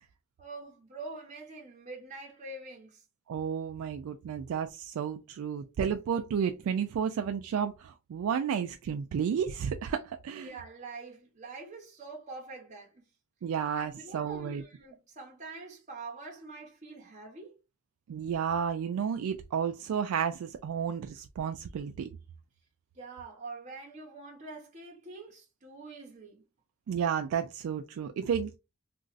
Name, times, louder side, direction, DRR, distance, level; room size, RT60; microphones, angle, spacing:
voice 1, 0.4-3.0 5.5-5.7 10.4-13.0 13.7-17.5 22.9-26.4, right 3 dB, 35° right, 0.9 m, -45 dB
voice 2, 3.3-10.5 13.4-14.6 18.1-22.1 26.9-28.6, right 7 dB, 85° right, 0.3 m, -32 dB
3.0 x 2.5 x 2.5 m
head